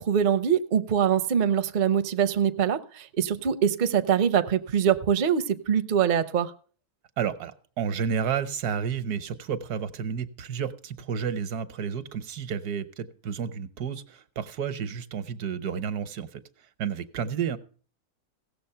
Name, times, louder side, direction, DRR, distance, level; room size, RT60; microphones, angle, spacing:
voice 1, 0.0-6.5, right 8 dB, 45° right, 0.6 m, -24 dB
voice 2, 7.2-16.4 16.8-17.6, right 7 dB, 80° right, 1.4 m, -31 dB
16.5 x 7.1 x 5.6 m
omnidirectional pair, 1.6 m